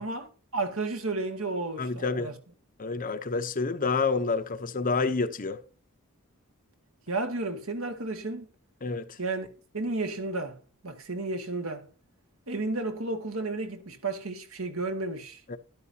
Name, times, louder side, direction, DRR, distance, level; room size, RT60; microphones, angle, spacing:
voice 1, 0.0-2.4 7.1-8.5 9.2-9.5 9.7-10.6 10.8-11.9 12.5-15.4, right 3 dB, 70° right, 2.0 m, -32 dB
voice 2, 1.8-2.3 2.8-5.6 8.8-9.2 15.5-15.6, left 4 dB, 40° left, 0.8 m, -28 dB
12.5 x 12.0 x 2.8 m
head